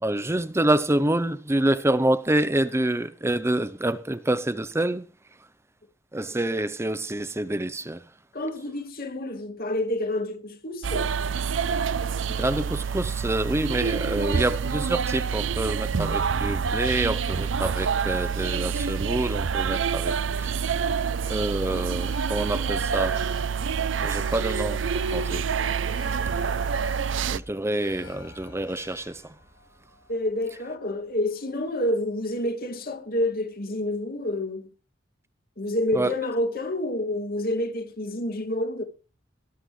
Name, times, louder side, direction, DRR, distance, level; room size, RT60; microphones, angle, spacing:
voice 1, 0.0-5.1 6.1-8.0 12.4-20.7 21.3-23.2 24.0-24.8 25.1-25.4 27.3-29.3 35.9-36.1, right 1 dB, 15° right, 0.8 m, -27 dB
voice 2, 8.3-11.1 30.1-34.7 35.6-38.8, left 1 dB, 50° left, 2.5 m, -28 dB
sound 1, 10.8-27.4, right 6 dB, 75° right, 0.6 m, -27 dB
Alarm, 21.2-31.5 31.8-31.9, left 3 dB, 85° left, 4.0 m, -48 dB
19.0 x 13.0 x 3.3 m
head